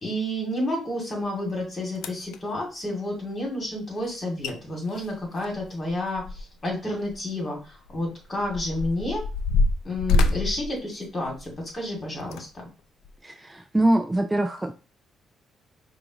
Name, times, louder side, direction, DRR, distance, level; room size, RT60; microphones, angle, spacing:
voice 1, 0.0-9.2 9.8-12.5, left 1 dB, 35° left, -1 dB, 2.4 m, -30 dB
sound 1, 1.5-1.6 2.0-2.4 4.1-4.2 4.4-4.5 4.9-6.7 7.0-7.2 7.9-11.6 12.2-12.4 13.0-13.2, left 3 dB, 85° left, 0.4 m, -26 dB
voice 2, 13.2-14.7, right 1 dB, 15° right, 6 dB, 0.4 m, -23 dB
5.1 x 2.5 x 2.9 m, 0.33 s
cardioid pair, 90°, 0 cm